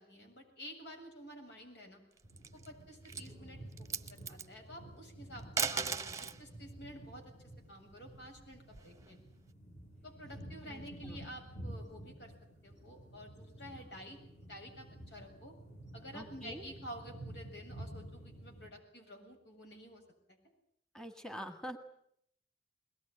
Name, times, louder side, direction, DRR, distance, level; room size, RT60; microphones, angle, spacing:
voice 1, 0.0-2.0 2.5-9.2 10.0-12.3 12.6-15.6 15.9-20.0 20.3-20.4, equal, 80° left, 3 dB, 7.7 m, -51 dB
sound 1, 2.2-18.7, right 1 dB, 45° left, 5.3 m, -51 dB
sound 2, 2.2-2.7 3.0-3.3 3.7-4.5 5.4-6.4 7.9-9.1, right 6 dB, 20° right, 0.9 m, -37 dB
voice 2, 10.6-11.2 16.1-16.7 20.9-21.8, right 1 dB, 5° left, 8 dB, 1.7 m, -46 dB
22.0 x 19.5 x 9.9 m, 0.70 s
head